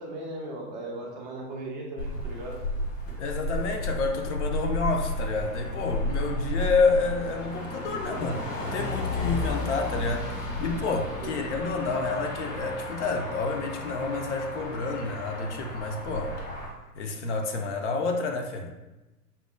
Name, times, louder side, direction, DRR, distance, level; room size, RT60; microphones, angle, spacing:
voice 1, 0.0-2.6 11.2-11.4, right 1 dB, 30° right, -2 dB, 0.4 m, -37 dB
Motor vehicle (road), 2.0-16.7, left 1 dB, 75° left, 1.2 m, -33 dB
voice 2, 3.2-16.4 16.9-18.8, left 4 dB, 50° left, 3 dB, 0.5 m, -29 dB
5.4 x 2.0 x 2.3 m, 1.1 s
figure-of-eight pair, 105°, 47 cm